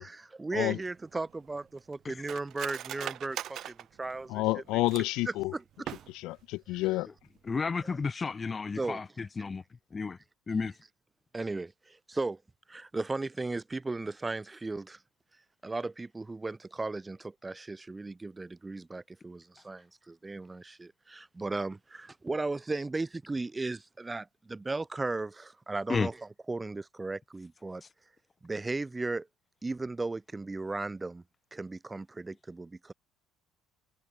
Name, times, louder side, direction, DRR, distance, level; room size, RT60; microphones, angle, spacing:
voice 1, 0.0-4.6 5.3-5.6 7.8-7.9 8.8-9.0 11.3-12.4 12.7-15.0 15.6-27.8 28.4-29.3 29.6-31.2 31.5-32.9, right 3 dB, 10° right, 3.3 m, -36 dB
Cutlery silverware, 0.8-5.3 5.7-6.4 6.8-6.9 7.2-7.5 7.9-8.1, right 11 dB, 45° right, 3.1 m, -42 dB
voice 2, 4.3-5.5 6.1-7.1, left 20 dB, 70° left, 0.9 m, -29 dB
voice 3, 7.5-9.6 9.9-10.2 10.5-10.7 25.9-26.1 27.8-27.9, left 4 dB, 20° left, 1.4 m, -32 dB
cardioid pair, 160°, 0 cm